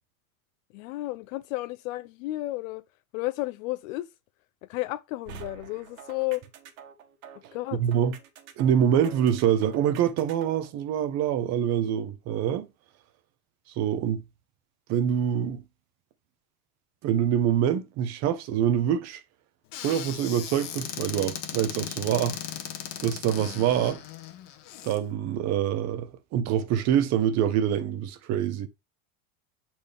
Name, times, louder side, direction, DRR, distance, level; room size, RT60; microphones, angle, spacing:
voice 1, 0.7-2.8 3.1-4.1 4.6-6.4 7.5-7.8, left 18 dB, 65° left, 0.5 m, -32 dB
sound 1, 5.3-10.7, right 7 dB, 75° right, 1.7 m, -47 dB
voice 2, 7.8-8.2 8.6-12.7 13.7-14.2 14.9-15.6 17.0-19.2 19.8-22.4 23.0-24.0 24.8-28.7, right 9 dB, 40° right, 0.9 m, -25 dB
Squeak / Cupboard open or close, 19.7-25.0, left 11 dB, 50° left, 1.3 m, -37 dB
7.3 x 4.4 x 3.5 m
supercardioid pair, 150°, 43 cm